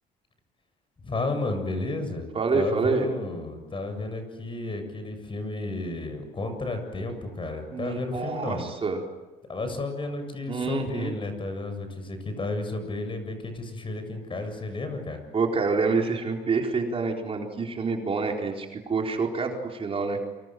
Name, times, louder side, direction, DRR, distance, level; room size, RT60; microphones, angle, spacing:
voice 1, 1.0-8.6 9.5-15.2, left 2 dB, 30° left, 7 dB, 7.5 m, -32 dB
voice 2, 2.3-3.1 7.7-9.0 10.5-11.2 15.3-20.2, right 4 dB, 35° right, 1 dB, 4.3 m, -27 dB
29.0 x 25.5 x 7.8 m, 1.2 s
cardioid pair, 110°, 17 cm